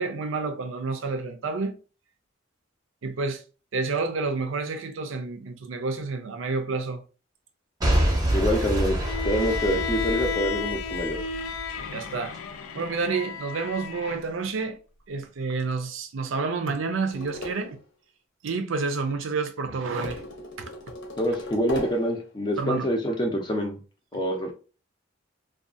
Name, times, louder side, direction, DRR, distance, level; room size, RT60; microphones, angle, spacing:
voice 1, 0.0-1.8 3.0-3.4 3.7-7.0 11.9-12.3 12.7-14.8 15.1-17.8 18.4-20.2 22.6-22.9, right 4 dB, 75° right, 0.5 m, -29 dB
Boom / Shatter / Crushing, 7.8-11.8 12.3-12.4, right 1 dB, 20° right, 0.6 m, -27 dB
voice 2, 8.3-11.2 21.2-23.8 24.1-24.5, equal, 20° left, 0.5 m, -26 dB
Bowed string instrument, 9.0-14.2, left 6 dB, 80° left, 0.4 m, -33 dB
sound 1, 17.1-17.8 20.0-22.2, left 2 dB, 60° left, 0.8 m, -38 dB
2.6 x 2.3 x 2.4 m
head